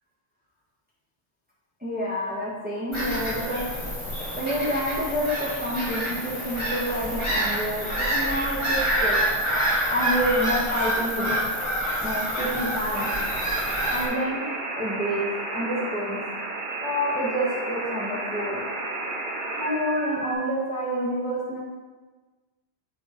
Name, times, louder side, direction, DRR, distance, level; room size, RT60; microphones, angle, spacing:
voice 1, 1.8-3.6 4.3-9.2 9.9-11.4 12.0-13.1 13.9-14.4 14.8-15.2 15.5-16.2 16.8-18.6 19.5-21.6, equal, 10° right, -9 dB, 1.7 m, -28 dB
Bird vocalization bird call bird song / Gull seagull, 2.9-14.0, right 1 dB, 25° left, 1.8 m, -27 dB
sound 1, 12.9-20.3, right 2 dB, 50° right, 1.0 m, -32 dB
8.0 x 3.8 x 5.2 m, 1.3 s
omnidirectional pair, 1.1 m